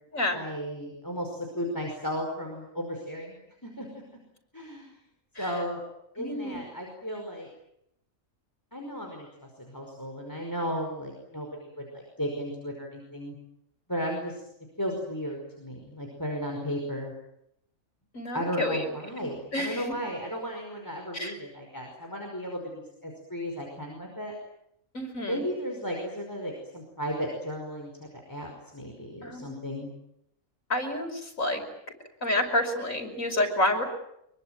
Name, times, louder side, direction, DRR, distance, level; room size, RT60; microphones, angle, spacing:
voice 1, 0.3-3.4 3.6-4.0 4.5-5.0 5.4-5.8 6.2-7.5 8.7-9.3 9.6-13.4 13.9-14.4 14.8-17.1 18.3-24.4 25.2-29.9, equal, 15° left, 1 dB, 5.2 m, -35 dB
voice 2, 6.2-6.6 18.1-18.9 19.2-20.0 21.1-21.4 24.9-25.4 29.2-29.7 30.7-31.6 32.2-33.8, left 1 dB, 85° left, 3 dB, 5.9 m, -29 dB
25.0 x 23.5 x 9.1 m, 0.78 s
omnidirectional pair, 1.4 m